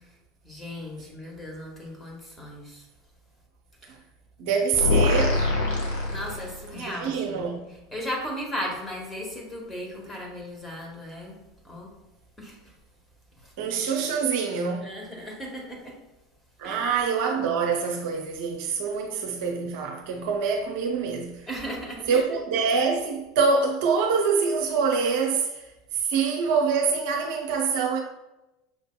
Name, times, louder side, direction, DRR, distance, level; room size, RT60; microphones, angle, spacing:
voice 1, 0.4-2.8 3.8-4.0 6.1-7.4 7.9-11.3 11.6-11.9 12.4-12.6 14.8-15.9 16.6-17.0 21.5-22.2, equal, 10° left, 1.3 m, -36 dB
voice 2, 4.4-5.5 6.7-7.6 13.6-14.9 16.6-21.5 22.1-25.7 25.9-28.0, right 5 dB, 60° right, 0.5 m, -25 dB
sound 1, 4.7-6.8, left 3 dB, 65° left, 0.8 m, -24 dB
6.1 x 2.6 x 2.2 m
figure-of-eight pair, 75°, 0 cm